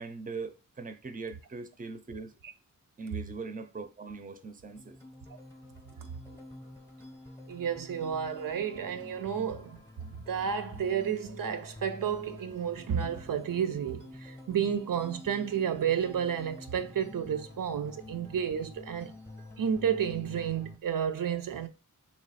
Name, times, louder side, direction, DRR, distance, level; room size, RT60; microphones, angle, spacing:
voice 1, 0.0-2.3 3.0-5.0, right 4 dB, 25° right, 0.5 m, -40 dB
sound 1, 4.7-20.8, left 2 dB, 5° left, 0.7 m, -48 dB
voice 2, 7.5-9.8 10.3-19.1 19.6-21.7, right 8 dB, 85° right, 0.5 m, -31 dB
3.2 x 3.0 x 4.0 m
wide cardioid pair, 80°, 33 cm